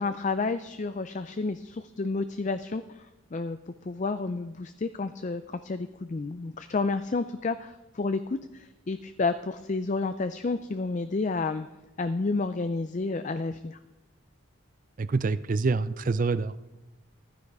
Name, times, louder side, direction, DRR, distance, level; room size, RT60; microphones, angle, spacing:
voice 1, 0.0-3.0 3.3-3.6 3.8-11.7 12.0-13.8, left 3 dB, 35° left, 10 dB, 0.4 m, -30 dB
voice 2, 15.0-16.5, right 4 dB, 40° right, 15 dB, 0.4 m, -26 dB
14.5 x 12.5 x 4.7 m, 1.0 s
head